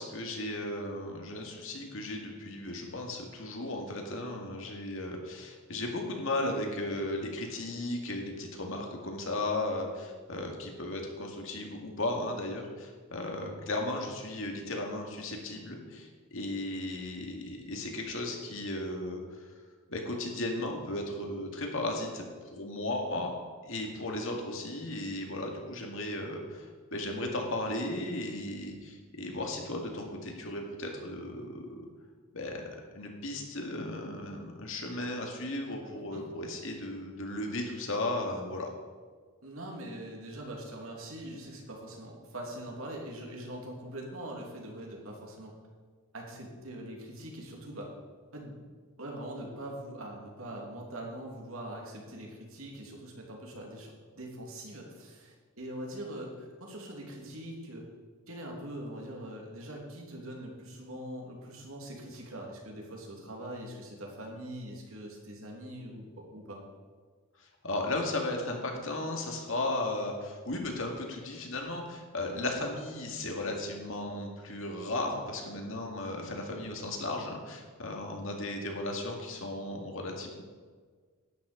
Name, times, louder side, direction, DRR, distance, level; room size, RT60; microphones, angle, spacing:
voice 1, 0.0-19.2 19.9-22.2 22.5-23.3 23.7-31.9 32.3-32.7 32.9-38.7 67.6-80.4, left 2 dB, 65° left, 1 dB, 2.2 m, -35 dB
voice 2, 39.4-45.5 46.1-47.9 48.3-48.6 49.0-57.9 58.3-66.6, right 1 dB, 70° right, 0 dB, 2.8 m, -42 dB
12.0 x 9.7 x 5.1 m, 1.5 s
head